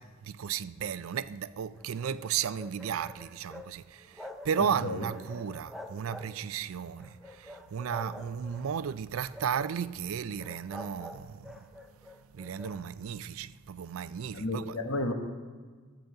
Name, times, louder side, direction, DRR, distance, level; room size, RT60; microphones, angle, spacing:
voice 1, 0.0-11.6 12.3-14.8, right 7 dB, 85° right, 0.4 m, -34 dB
sound 1, 1.7-3.7 4.0-4.8 5.1-6.6 7.0-8.7 9.2-9.8 10.4-12.8, left 1 dB, ahead, 0.5 m, -46 dB
voice 2, 4.6-5.1 14.3-15.1, left 1 dB, 90° left, 1.4 m, -32 dB
12.0 x 5.2 x 7.8 m
head